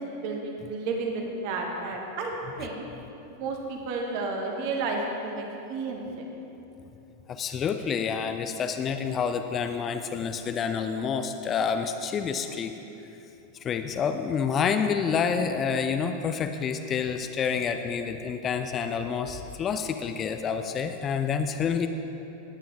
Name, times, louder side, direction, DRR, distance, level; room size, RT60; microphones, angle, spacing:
voice 1, 0.0-2.8 3.4-6.2, right 3 dB, 45° right, 1 dB, 1.6 m, -32 dB
voice 2, 7.3-12.7 13.6-21.9, left 6 dB, 25° left, 8 dB, 0.5 m, -28 dB
18.5 x 9.1 x 3.3 m, 3.0 s
figure-of-eight pair, 90°, 0 cm